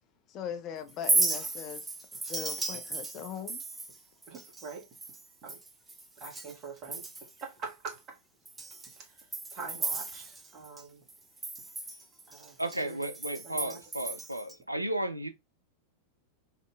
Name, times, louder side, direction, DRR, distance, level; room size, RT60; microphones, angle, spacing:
voice 1, 0.3-1.8 2.3-3.6, left 8 dB, 35° left, 0.5 m, -39 dB
Chink clink, 0.9-6.6 6.8-7.4 7.9-8.0 8.4-10.8 11.1-14.5, right 3 dB, 15° right, 0.5 m, -35 dB
voice 2, 4.3-4.8 5.4-5.6 6.2-7.0 7.4-8.2 9.5-10.2 10.5-11.0 12.3-12.5 12.8-13.0 13.4-13.8, right 4 dB, 35° right, 1.4 m, -43 dB
voice 3, 12.6-15.3, right 1 dB, 85° right, 0.3 m, -34 dB
3.6 x 2.7 x 2.3 m
figure-of-eight pair, 90°, 0 cm